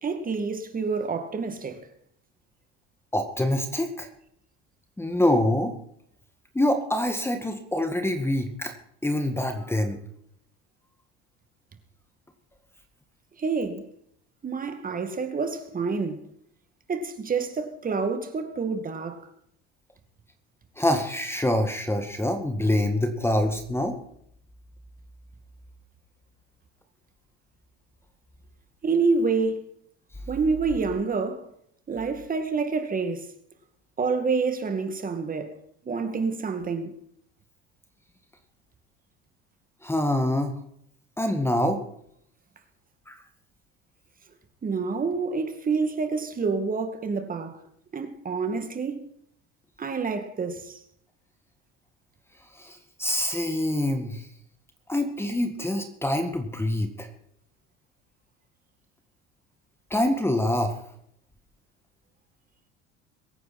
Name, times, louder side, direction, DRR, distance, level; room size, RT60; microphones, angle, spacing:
voice 1, 0.0-1.8 13.4-13.8 14.4-16.2 16.9-19.2 28.8-29.6 30.3-31.4 31.9-33.3 34.0-35.5 35.9-36.9 44.6-47.6 47.9-49.1 49.8-50.8, right 4 dB, 30° right, 2.3 m, -27 dB
voice 2, 3.1-4.1 5.0-5.7 6.6-8.7 9.0-10.0 20.8-23.9 39.8-40.5 41.2-41.8 43.1-43.2 52.6-54.2 54.9-57.1 59.9-60.7, left 1 dB, 10° left, 1.8 m, -25 dB
23.0 x 9.3 x 4.4 m
supercardioid pair, 110°, 30 cm